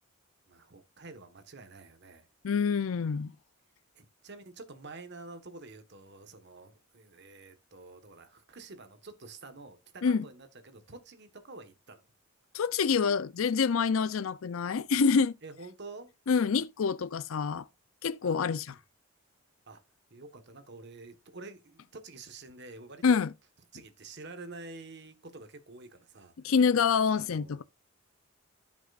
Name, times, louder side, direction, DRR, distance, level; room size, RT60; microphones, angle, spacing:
voice 1, 0.5-2.3 3.9-12.0 15.4-16.1 18.2-18.4 19.7-19.8 20.1-23.0 23.7-26.3 27.2-27.6, right 3 dB, 55° right, 1.3 m, -48 dB
voice 2, 2.4-3.3 10.0-10.2 12.5-15.4 16.3-17.7 18.0-18.7 23.0-23.3 26.4-27.6, left 5 dB, 75° left, 0.5 m, -26 dB
15.5 x 6.1 x 2.4 m
head